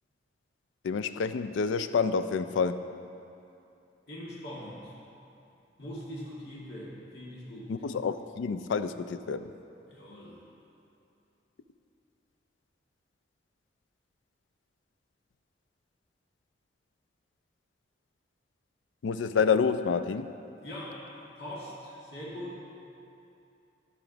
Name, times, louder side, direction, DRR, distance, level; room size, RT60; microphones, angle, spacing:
voice 1, 0.8-2.8 7.7-9.5 19.0-20.3, left 5 dB, 80° left, 11 dB, 0.4 m, -28 dB
voice 2, 4.1-4.9 5.8-7.7 9.8-10.4 20.6-22.6, equal, 60° left, -6 dB, 2.1 m, -42 dB
13.5 x 4.9 x 4.0 m, 2.7 s
head